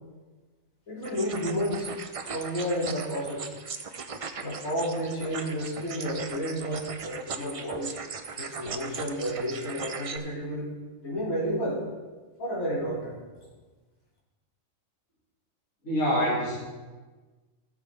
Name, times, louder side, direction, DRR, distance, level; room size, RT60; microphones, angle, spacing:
voice 1, 0.9-1.9 2.2-3.5 4.4-8.0 8.4-10.7 11.0-11.8 12.4-13.2, equal, 85° left, -7 dB, 3.3 m, -31 dB
sound 1, 1.0-10.2, right 5 dB, 55° right, 0.3 m, -38 dB
voice 2, 15.8-16.6, equal, 70° left, -7 dB, 2.5 m, -25 dB
16.5 x 7.3 x 3.4 m, 1.3 s
omnidirectional pair, 1.4 m